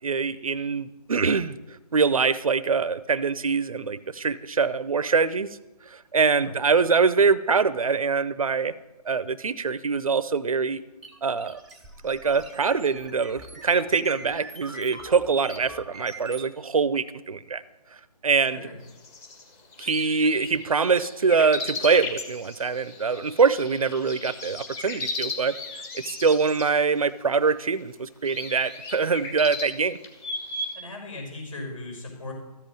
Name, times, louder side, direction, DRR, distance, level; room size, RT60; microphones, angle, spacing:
voice 1, 0.0-1.6 1.9-5.5 5.9-8.7 9.1-10.8 11.2-11.6 12.0-17.6 18.2-18.6 19.8-25.5 25.9-30.0, right 5 dB, 55° right, 16 dB, 0.7 m, -24 dB
sound 1, 11.0-16.5, right 2 dB, ahead, 0.6 m, -43 dB
voice 2, 18.5-18.8 20.2-20.3 30.7-32.3, left 2 dB, 50° left, 2 dB, 5.7 m, -38 dB
sound 2, 18.9-26.7 27.5-27.6 28.2-30.7, left 3 dB, 15° left, 1.6 m, -36 dB
13.5 x 7.7 x 9.1 m, 0.98 s
figure-of-eight pair, 150°, 21 cm